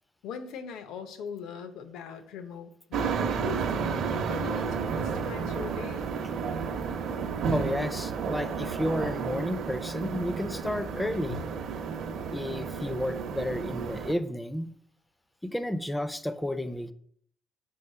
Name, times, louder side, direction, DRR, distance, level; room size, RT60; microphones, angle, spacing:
voice 1, 0.2-6.1, left 6 dB, 90° left, 9 dB, 0.8 m, -41 dB
sound 1, 2.9-14.1, right 5 dB, 55° right, 0.7 m, -32 dB
voice 2, 7.5-11.4 12.3-14.7 15.4-16.9, left 1 dB, 5° left, 12 dB, 0.3 m, -32 dB
4.7 x 4.7 x 5.5 m, 0.63 s
cardioid pair, 175°, 0 cm